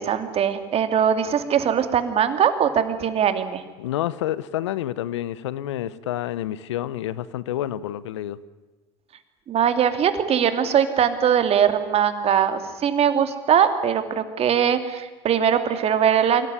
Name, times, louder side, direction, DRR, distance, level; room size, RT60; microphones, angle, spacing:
voice 1, 0.0-3.6 9.5-16.5, right 8 dB, 45° right, 9 dB, 2.7 m, -21 dB
voice 2, 3.8-8.4, left 13 dB, 80° left, 18 dB, 0.9 m, -28 dB
24.5 x 18.0 x 9.9 m, 1.2 s
hypercardioid pair, 80°, 15 cm